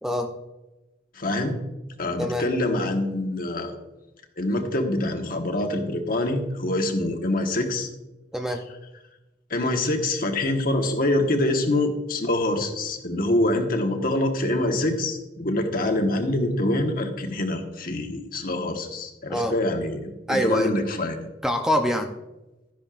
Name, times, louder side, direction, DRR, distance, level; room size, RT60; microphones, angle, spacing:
voice 1, 1.1-1.6 2.0-3.7 4.4-7.9 9.5-21.3, left 1 dB, 55° left, 4 dB, 1.3 m, -25 dB
voice 2, 20.3-20.7 21.4-22.1, equal, 5° right, 4 dB, 0.6 m, -24 dB
13.0 x 10.5 x 2.5 m, 1.0 s
head